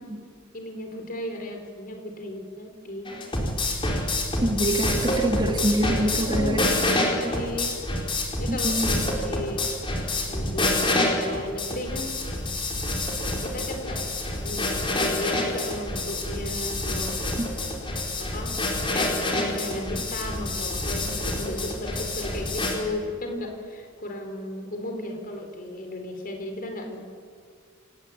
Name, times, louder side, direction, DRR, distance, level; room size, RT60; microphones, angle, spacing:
voice 1, 0.5-3.1 6.1-7.7 8.4-9.7 10.2-12.1 13.2-14.0 14.4-17.2 18.2-18.5 18.9-27.0, left 1 dB, 40° left, 4 dB, 4.2 m, -35 dB
sound 1, 3.1-22.8, left 2 dB, 25° left, 4.4 m, -27 dB
voice 2, 4.4-6.6 8.5-8.9 17.4-17.5, right 1 dB, 20° right, 3 dB, 2.0 m, -25 dB
28.0 x 18.0 x 8.9 m, 2.1 s
head